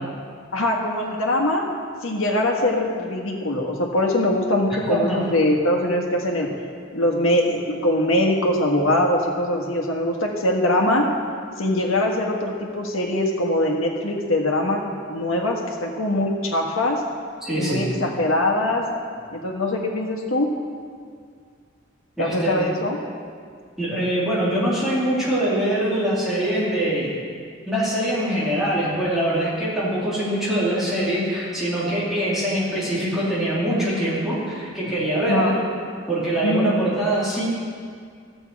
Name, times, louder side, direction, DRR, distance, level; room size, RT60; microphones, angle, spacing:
voice 1, 0.5-1.6 2.0-6.5 6.9-11.0 11.6-14.8 15.1-17.0 17.6-18.8 19.3-20.5 22.2-23.0 35.3-35.6 36.4-36.7, left 1 dB, 90° left, 0 dB, 1.6 m, -22 dB
voice 2, 17.4-17.9 22.2-22.6 23.8-27.1 27.7-35.5 36.1-37.4, right 1 dB, ahead, -9 dB, 3.1 m, -23 dB
13.5 x 7.9 x 4.7 m, 2.1 s
head